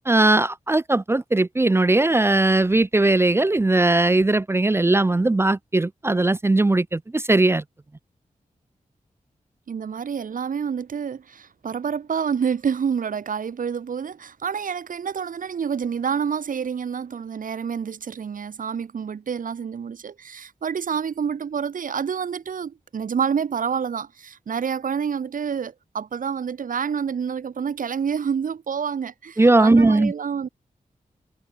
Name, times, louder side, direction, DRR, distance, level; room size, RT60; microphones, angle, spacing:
voice 1, 0.1-7.6 29.4-30.1, right 2 dB, 20° right, 0.5 m, -19 dB
voice 2, 9.7-30.5, right 7 dB, 80° right, 1.4 m, -28 dB
wide cardioid pair, 135°, 14 cm